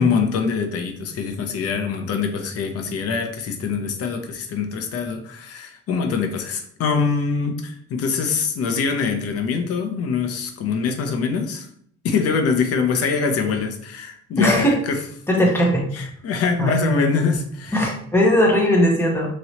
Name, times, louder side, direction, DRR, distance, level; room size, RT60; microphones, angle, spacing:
voice 1, 0.0-11.7 12.0-15.0 15.9-17.9, left 5 dB, 55° left, 5 dB, 0.6 m, -24 dB
voice 2, 14.4-14.8 15.3-16.1 16.6-16.7 17.7-19.4, equal, 10° left, -1 dB, 0.7 m, -18 dB
3.0 x 2.9 x 2.9 m, 0.62 s
cardioid pair, 145°, 29 cm